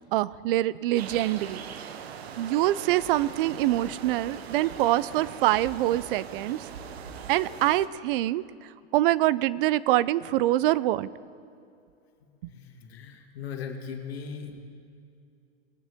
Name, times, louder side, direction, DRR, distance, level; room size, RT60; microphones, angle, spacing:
voice 1, 0.1-1.6 2.4-6.6 7.3-8.4 8.9-11.1 12.4-12.5, right 15 dB, 60° right, 19 dB, 0.5 m, -25 dB
sound 1, 0.9-7.9, right 7 dB, 90° right, 0.9 m, -41 dB
voice 2, 12.5-14.6, left 6 dB, 85° left, 3 dB, 1.9 m, -38 dB
21.5 x 9.3 x 3.6 m, 2.5 s
hypercardioid pair, 120°, 30 cm